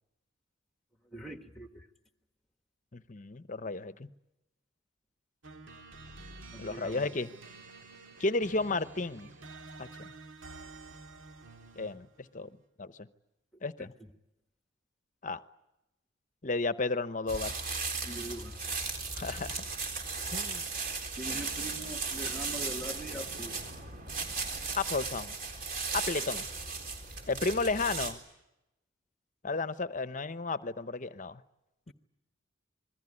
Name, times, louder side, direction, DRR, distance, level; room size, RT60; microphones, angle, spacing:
voice 1, 1.1-1.9 6.5-7.1 13.8-13.9 18.0-18.6 21.1-23.6, right 1 dB, ahead, 6 dB, 1.4 m, -42 dB
voice 2, 2.9-4.1 6.6-7.3 8.2-9.3 9.8-10.1 11.8-12.5 12.8-13.1 13.6-13.9 15.2-15.4 16.4-17.5 19.1-19.6 20.3-20.6 24.7-25.4 25.9-26.5 27.3-28.2 29.4-31.4 31.9-32.0, left 3 dB, 40° left, 13 dB, 0.9 m, -33 dB
sound 1, 5.4-12.1, right 3 dB, 70° right, 2.0 m, -50 dB
sound 2, 17.3-28.1, right 4 dB, 45° right, 3.9 m, -36 dB
27.0 x 21.5 x 9.8 m, 0.93 s
head